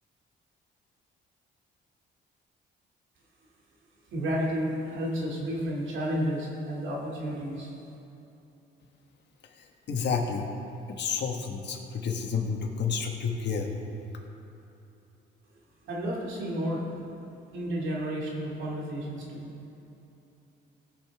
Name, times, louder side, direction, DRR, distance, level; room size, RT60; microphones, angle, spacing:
voice 1, 4.1-7.7 15.8-16.8 17.5-19.5, equal, 75° right, -4 dB, 2.7 m, -31 dB
voice 2, 9.9-10.4 10.9-13.7, left 5 dB, 60° left, 2 dB, 1.4 m, -30 dB
18.5 x 6.8 x 3.6 m, 3.0 s
cardioid pair, 90°, 20 cm